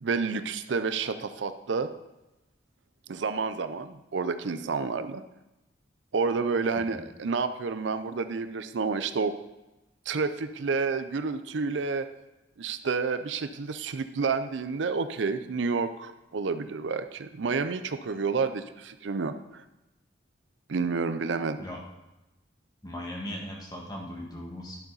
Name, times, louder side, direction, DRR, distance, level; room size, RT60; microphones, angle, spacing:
voice 1, 0.0-1.9 3.1-5.2 6.1-9.3 10.1-12.1 12.6-19.6 20.7-21.6, right 4 dB, 75° right, 11 dB, 0.5 m, -29 dB
voice 2, 22.8-24.8, left 1 dB, 20° left, -1 dB, 1.6 m, -38 dB
11.0 x 6.9 x 3.9 m, 0.99 s
head